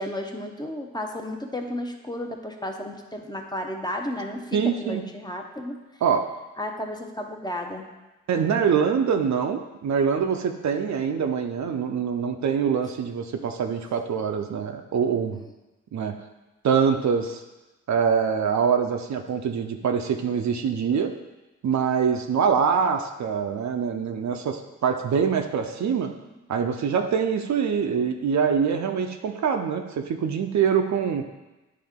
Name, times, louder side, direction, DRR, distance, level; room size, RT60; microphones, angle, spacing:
voice 1, 0.0-5.8 6.6-7.9, left 1 dB, 15° left, 2 dB, 0.7 m, -33 dB
voice 2, 4.5-5.0 6.0-6.3 8.3-15.4 15.9-16.2 16.6-17.4 17.9-21.1 21.6-26.1 26.5-31.3, right 6 dB, 65° right, 5 dB, 0.6 m, -24 dB
9.7 x 3.3 x 3.6 m, 1.1 s
cardioid pair, 85°, 30 cm